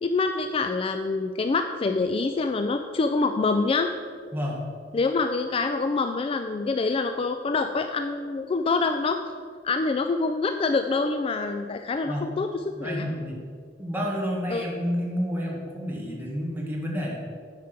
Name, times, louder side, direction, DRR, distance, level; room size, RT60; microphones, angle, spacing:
voice 1, 0.0-3.9 4.9-9.2 9.6-12.5 12.8-13.1 14.5-14.7, left 3 dB, 30° left, 7 dB, 0.3 m, -26 dB
voice 2, 12.8-13.4 13.8-17.2, equal, 10° right, -3 dB, 1.7 m, -30 dB
9.4 x 4.8 x 6.0 m, 2.2 s
head